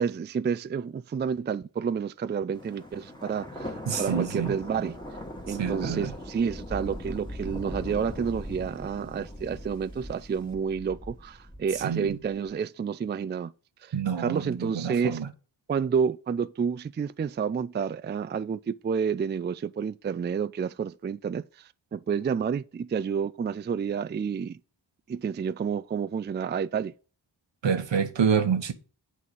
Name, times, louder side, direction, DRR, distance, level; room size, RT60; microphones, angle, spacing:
voice 1, 0.0-5.0 5.5-13.5 13.8-15.2 15.7-24.6 25.1-26.9, right 6 dB, 25° right, 0.3 m, -30 dB
Thunder, 2.5-12.4, left 1 dB, 10° left, 1.9 m, -39 dB
voice 2, 3.9-4.6 5.5-6.1 11.8-12.2 13.9-15.3 27.6-28.7, right 7 dB, 75° right, 1.1 m, -27 dB
8.4 x 4.8 x 5.3 m
cardioid pair, 55°, 45 cm